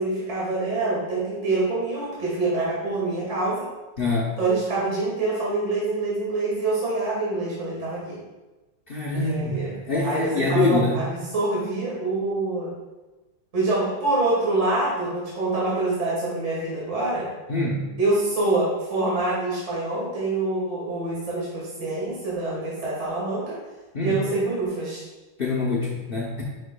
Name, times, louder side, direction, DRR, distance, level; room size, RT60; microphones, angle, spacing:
voice 1, 0.0-3.7 4.4-8.2 9.1-9.7 10.0-12.7 13.5-17.3 18.0-23.6 24.0-25.0, right 2 dB, 40° right, -6 dB, 1.7 m, -26 dB
voice 2, 4.0-4.4 8.9-11.1 17.5-17.8 23.9-24.2 25.4-26.4, left 2 dB, 60° left, -4 dB, 0.5 m, -24 dB
9.7 x 4.6 x 2.2 m, 1.1 s
omnidirectional pair, 2.0 m